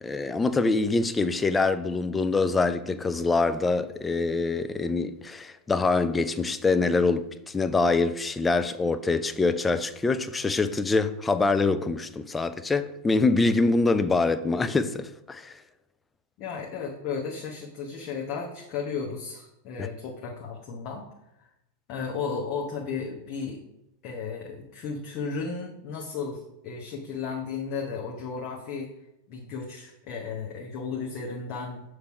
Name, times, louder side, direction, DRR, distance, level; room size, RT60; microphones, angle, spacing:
voice 1, 0.0-15.6 19.8-19.9, left 3 dB, 15° left, 0.4 m, -25 dB
voice 2, 16.4-21.0 21.9-23.6 24.0-28.9 29.3-31.8, left 5 dB, 40° left, 1.0 m, -34 dB
6.7 x 3.2 x 5.8 m
figure-of-eight pair, 90°, 0 cm